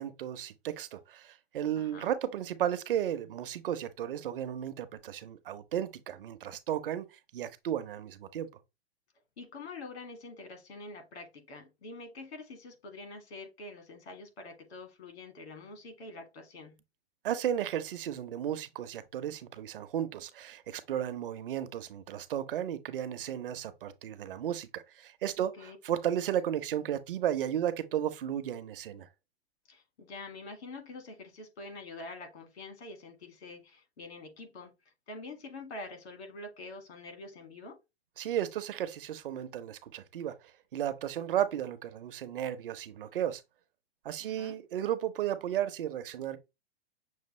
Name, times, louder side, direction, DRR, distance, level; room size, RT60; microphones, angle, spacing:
voice 1, 0.0-7.1 7.3-8.5 17.2-29.1 38.2-40.4 40.7-43.4 44.0-46.4, right 10 dB, 55° right, 0.7 m, -34 dB
voice 2, 1.8-2.1 9.4-16.8 25.4-25.8 29.7-34.7 35.1-37.8 44.2-44.6, left 2 dB, 85° left, 1.9 m, -46 dB
6.4 x 2.3 x 3.1 m
hypercardioid pair, 170°, 32 cm